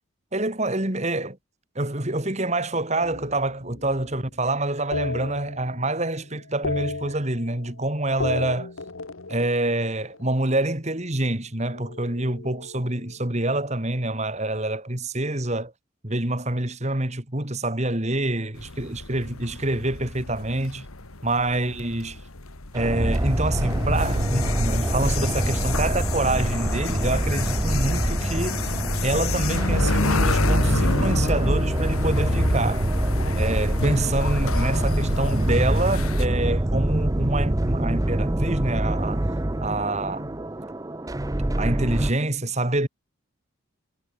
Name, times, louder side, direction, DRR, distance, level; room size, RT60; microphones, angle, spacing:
voice 1, 0.3-1.4 1.7-8.7 9.3-15.7 16.0-20.9 21.2-22.2 22.7-28.7 29.0-32.8 33.4-39.3 39.6-40.3 41.5-42.9, right 2 dB, 30° right, 2.5 m, -26 dB
sound 1, 3.0-4.3 4.9-6.1 6.4-7.8 8.1-10.4 11.6-13.4, left 3 dB, 75° left, 1.5 m, -34 dB
sound 2, 18.5-36.3, left 2 dB, 90° left, 2.6 m, -29 dB
sound 3, 22.7-42.1, right 1 dB, 15° right, 0.6 m, -25 dB
head